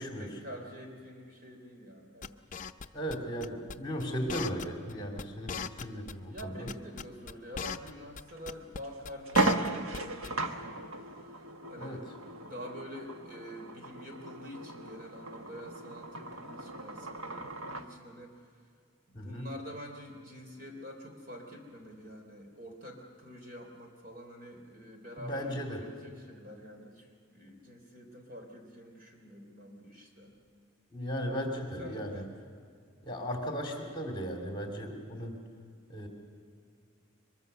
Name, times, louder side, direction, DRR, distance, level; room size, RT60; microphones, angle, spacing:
voice 1, 0.0-2.4 6.2-12.1 12.4-18.4 19.1-30.3 31.8-32.4, equal, 40° right, 3 dB, 3.4 m, -47 dB
sound 1, 2.2-3.1 3.4-3.7 4.0-4.1 4.3-4.9 5.2-5.3 5.5-6.4 6.7-7.9 8.2-8.3 8.5-8.8 9.0-10.0 10.2-10.3, left 6 dB, 35° left, 0.6 m, -38 dB
voice 2, 2.9-6.6 11.8-12.0 19.1-19.5 25.2-25.8 30.9-32.2 33.0-35.3 35.9-36.1, equal, 20° left, 2 dB, 2.8 m, -36 dB
sound 2, 8.3-8.4 8.8-8.9 9.3-17.9, right 2 dB, 75° right, 1.3 m, -36 dB
23.0 x 22.5 x 6.7 m, 2.2 s
head